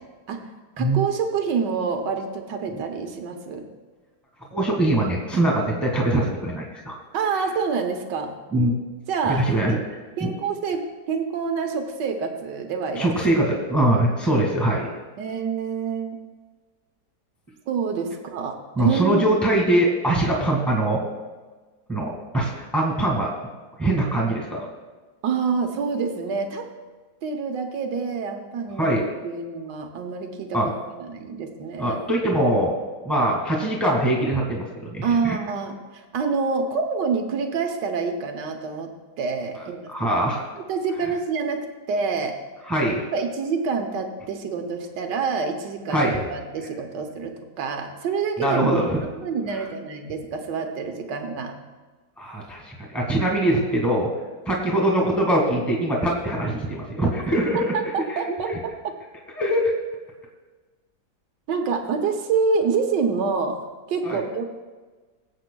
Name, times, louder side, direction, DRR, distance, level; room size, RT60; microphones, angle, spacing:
voice 1, 0.8-3.6 7.1-8.3 9.1-9.8 10.2-10.8 11.1-13.1 15.2-16.2 17.7-19.3 25.2-26.7 27.2-32.0 35.0-38.9 39.2-40.1 40.7-41.6 41.9-42.3 43.1-48.7 49.0-51.5 57.7-58.9 61.5-63.6 63.9-64.4, right 5 dB, 85° right, 4 dB, 1.6 m, -27 dB
voice 2, 4.5-7.0 8.5-8.8 9.3-9.8 10.2-10.3 13.0-14.9 18.8-21.0 21.9-23.3 23.8-24.7 28.8-29.0 30.5-30.7 31.8-32.7 33.0-35.4 39.9-40.4 42.7-43.0 45.9-46.2 48.4-49.0 49.5-49.6 52.2-54.1 54.5-57.7 58.1-58.2 59.3-59.7 64.0-64.2, right 1 dB, ahead, -1 dB, 1.7 m, -22 dB
23.0 x 7.8 x 2.3 m, 1.3 s
omnidirectional pair, 1.8 m